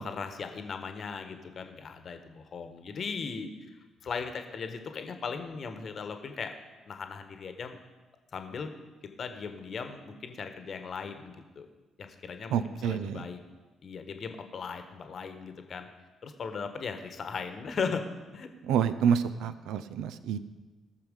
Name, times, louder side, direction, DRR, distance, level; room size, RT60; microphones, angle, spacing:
voice 1, 0.0-6.5 6.8-7.8 8.3-8.7 9.2-11.7 12.0-13.4 13.8-15.9 16.2-18.0 18.3-18.5, left 5 dB, 45° left, 7 dB, 1.2 m, -38 dB
voice 2, 12.5-13.2 18.7-20.4, right 8 dB, 60° right, 12 dB, 0.6 m, -28 dB
18.0 x 6.7 x 5.1 m, 1.2 s
figure-of-eight pair, 40°, 0 cm